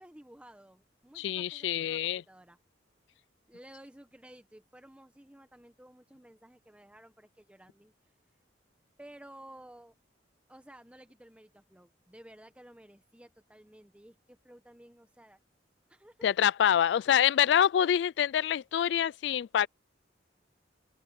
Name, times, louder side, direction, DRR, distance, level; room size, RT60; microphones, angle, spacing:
voice 1, 0.0-2.6 3.5-7.9 9.0-10.0 10.5-15.4 15.9-16.3 16.9-17.1, right 1 dB, 5° right, 1.2 m, -54 dB
voice 2, 1.2-2.2 16.2-19.7, left 9 dB, 65° left, 0.3 m, -26 dB
open air
head